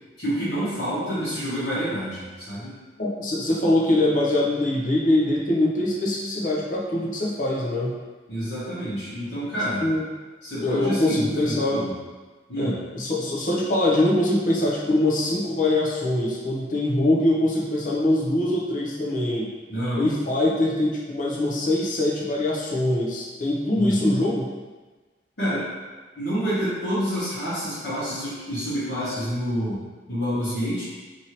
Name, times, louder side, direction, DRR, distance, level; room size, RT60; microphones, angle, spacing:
voice 1, 0.2-2.8 8.3-9.8 10.4-11.9 12.5-12.8 19.7-20.1 23.7-24.1 25.4-25.7 26.2-29.8 30.1-30.8, equal, 75° left, -14 dB, 1.2 m, -28 dB
voice 2, 3.0-7.9 9.8-10.1 10.6-11.9 12.6-19.5 19.9-24.5, left 1 dB, 45° left, -4 dB, 0.6 m, -23 dB
2.8 x 2.7 x 2.9 m, 1.3 s
head